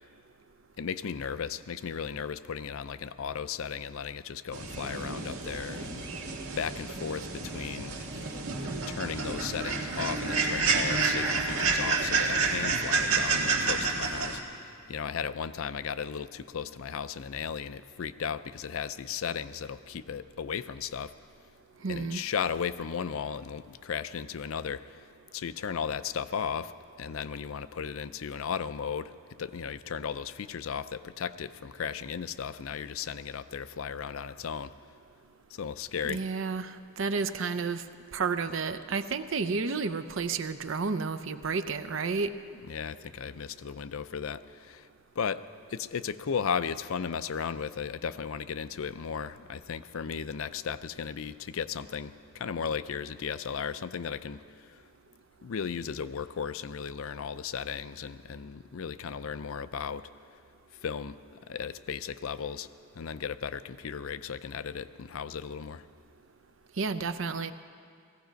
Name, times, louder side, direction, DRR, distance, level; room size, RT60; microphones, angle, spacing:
voice 1, 0.8-21.1 21.9-25.0 25.3-34.7 35.5-36.2 42.7-44.9 45.2-45.4 45.7-54.8 55.4-60.1 60.8-62.7 63.0-65.9, left 7 dB, 70° left, 13 dB, 0.4 m, -36 dB
sound 1, 4.5-14.4, right 4 dB, 80° right, 1.6 m, -29 dB
voice 2, 21.8-22.2 36.0-37.8 38.1-42.3 66.8-67.5, right 4 dB, 60° right, 10 dB, 0.6 m, -31 dB
17.5 x 15.5 x 5.2 m, 2.3 s
head